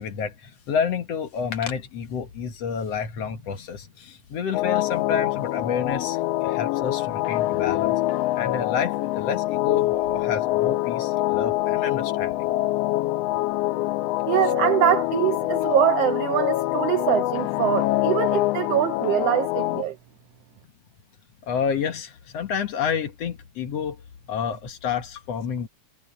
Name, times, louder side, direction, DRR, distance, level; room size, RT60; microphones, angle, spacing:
voice 1, 0.0-8.1 8.3-12.5 21.4-24.0 24.3-25.7, left 7 dB, 60° left, 2.5 m, -29 dB
sound 1, 4.5-19.8, left 17 dB, 80° left, 1.4 m, -25 dB
voice 2, 14.3-19.9, right 12 dB, 75° right, 1.4 m, -23 dB
omnidirectional pair, 3.3 m